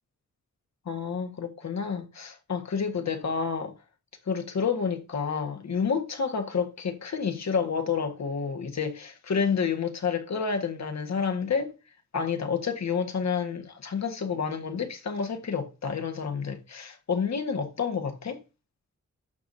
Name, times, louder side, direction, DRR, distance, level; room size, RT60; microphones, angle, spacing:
voice 1, 0.8-3.7 4.3-11.7 12.1-18.4, left 6 dB, 60° left, 1.7 m, -29 dB
11.5 x 7.2 x 2.8 m
cardioid pair, 70°, 30 cm